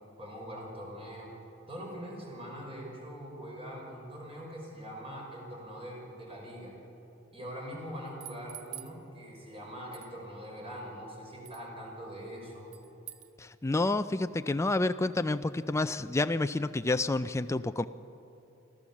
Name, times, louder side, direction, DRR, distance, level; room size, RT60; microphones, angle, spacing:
voice 1, 0.2-1.3 1.7-6.7 7.3-12.7, equal, 25° right, -2 dB, 5.4 m, -43 dB
sound 1, 8.1-9.0 9.9-10.1 11.4-11.7 12.7-13.3, right 13 dB, 85° right, 0.9 m, -46 dB
voice 2, 13.4-17.9, left 2 dB, 15° left, 10 dB, 0.4 m, -29 dB
26.0 x 14.5 x 7.3 m, 2.8 s
head